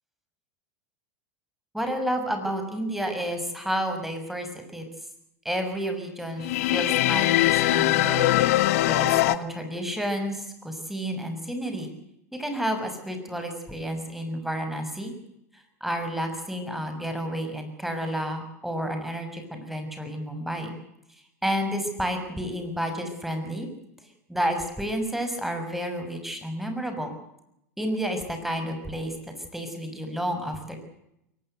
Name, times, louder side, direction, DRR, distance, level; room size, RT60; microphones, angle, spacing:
voice 1, 1.7-4.8 5.4-8.3 8.9-11.9 12.3-15.1 15.5-20.7 21.4-23.7 24.3-27.1 27.8-29.2 29.5-30.8, equal, 5° right, 6 dB, 6.4 m, -30 dB
sound 1, 6.4-9.4, left 16 dB, 60° left, 1.2 m, -21 dB
23.0 x 19.0 x 7.9 m, 0.81 s
hypercardioid pair, 90°, 9 cm